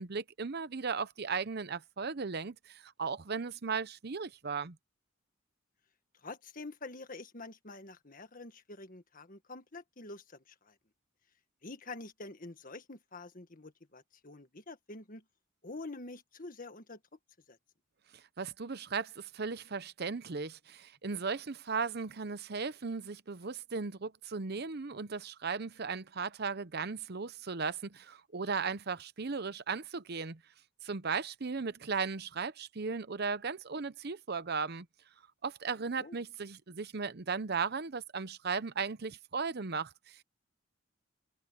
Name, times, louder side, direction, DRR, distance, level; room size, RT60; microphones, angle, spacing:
voice 1, 0.0-4.8 18.1-30.4 30.8-34.9 35.4-40.2, right 5 dB, 55° right, 0.8 m, -36 dB
voice 2, 6.2-10.7 11.6-15.2 15.6-17.0 17.5-17.6 36.0-36.2, left 2 dB, 45° left, 1.7 m, -47 dB
head